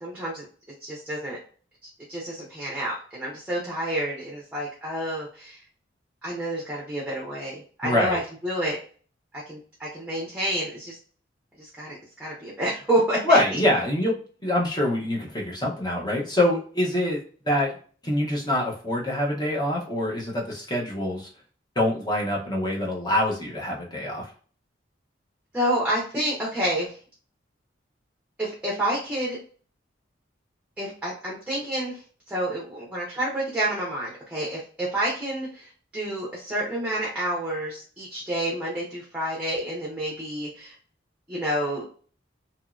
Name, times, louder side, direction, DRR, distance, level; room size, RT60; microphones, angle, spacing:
voice 1, 0.0-0.4 0.8-1.4 1.8-5.6 6.2-8.8 9.3-11.0 11.6-13.4 25.5-26.9 28.4-29.4 30.8-32.0 32.3-40.7 41.3-41.8, right 1 dB, 5° right, -5 dB, 0.8 m, -29 dB
voice 2, 7.8-8.2 13.2-14.2 14.4-17.8 18.0-21.3 21.8-24.3, left 1 dB, 20° left, -2 dB, 0.9 m, -25 dB
2.9 x 2.7 x 2.3 m, 0.42 s
head